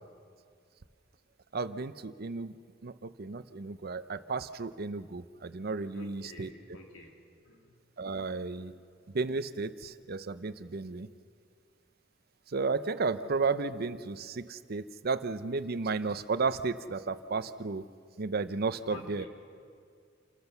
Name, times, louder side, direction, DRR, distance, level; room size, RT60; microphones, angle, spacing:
voice 1, 1.5-2.5 2.8-6.5 8.0-8.7 9.1-11.1 12.5-17.9 18.2-19.3, right 4 dB, 50° right, 13 dB, 0.7 m, -33 dB
voice 2, 5.9-7.1 7.4-7.8 8.7-8.8 18.9-19.3, left 2 dB, 85° left, 1 dB, 3.1 m, -48 dB
28.0 x 13.5 x 6.9 m, 2.2 s
head